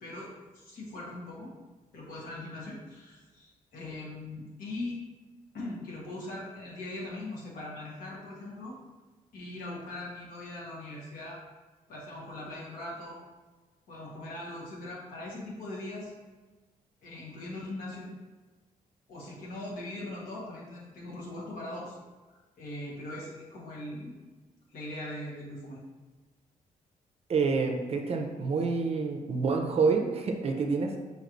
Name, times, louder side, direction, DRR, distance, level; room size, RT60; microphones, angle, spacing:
voice 1, 0.0-1.5 1.9-5.0 5.5-8.7 9.3-11.4 11.9-13.2 13.9-16.1 17.0-18.1 19.1-22.0 22.6-24.2 24.7-25.8, left 1 dB, 85° left, -5 dB, 1.3 m, -40 dB
voice 2, 27.3-31.0, right 4 dB, 45° right, 4 dB, 0.5 m, -28 dB
5.1 x 3.1 x 2.5 m, 1.2 s
cardioid pair, 110°, 15 cm